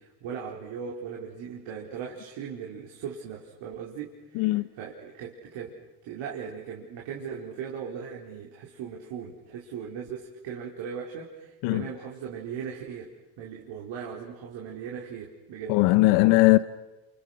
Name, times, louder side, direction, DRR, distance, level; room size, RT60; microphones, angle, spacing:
voice 1, 0.0-13.1 13.4-15.8, right 7 dB, 65° right, 4.6 m, -38 dB
voice 2, 4.3-4.7 11.6-11.9 15.7-16.6, left 20 dB, 70° left, 1.0 m, -19 dB
29.5 x 29.0 x 6.6 m
supercardioid pair, 100°, 48 cm